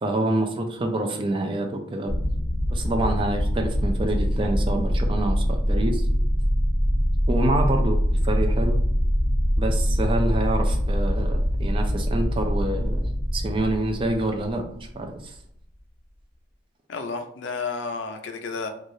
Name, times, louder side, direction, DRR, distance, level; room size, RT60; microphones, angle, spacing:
voice 1, 0.0-2.1 2.7-6.1 7.3-8.8 9.6-15.3, right 1 dB, 30° right, 4 dB, 0.4 m, -27 dB
sound 1, 2.1-15.1, equal, 5° right, 1.1 m, -24 dB
voice 2, 16.9-18.7, left 4 dB, 80° left, 6 dB, 0.4 m, -31 dB
3.1 x 2.3 x 2.6 m, 0.71 s
head